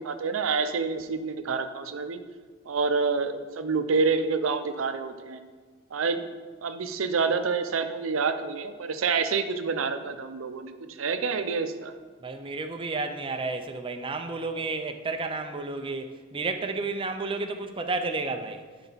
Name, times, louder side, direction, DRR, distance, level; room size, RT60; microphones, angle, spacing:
voice 1, 0.0-2.2 2.7-5.4 5.9-6.2 6.6-10.7 11.0-11.9, right 4 dB, 80° right, 0.6 m, -27 dB
voice 2, 12.2-18.7, right 3 dB, 25° right, 0.5 m, -31 dB
11.0 x 4.7 x 4.0 m
head